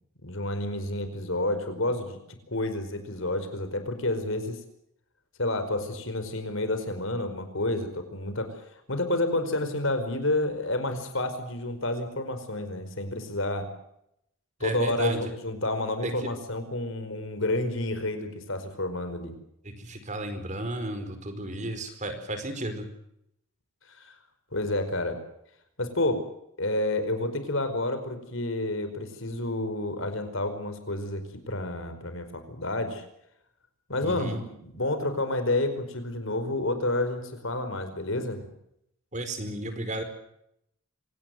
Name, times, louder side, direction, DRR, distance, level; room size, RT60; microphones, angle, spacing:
voice 1, 0.2-2.2 2.5-4.6 5.4-8.6 8.9-13.7 14.6-19.3 24.0-24.1 24.5-25.2 25.8-26.2 26.6-33.0 33.9-38.4, left 2 dB, 60° left, 9 dB, 5.0 m, -29 dB
voice 2, 14.6-15.3 16.0-16.3 19.6-22.9 34.0-34.4 39.1-40.0, right 1 dB, 35° right, 8 dB, 4.8 m, -33 dB
26.5 x 19.0 x 7.9 m, 0.77 s
head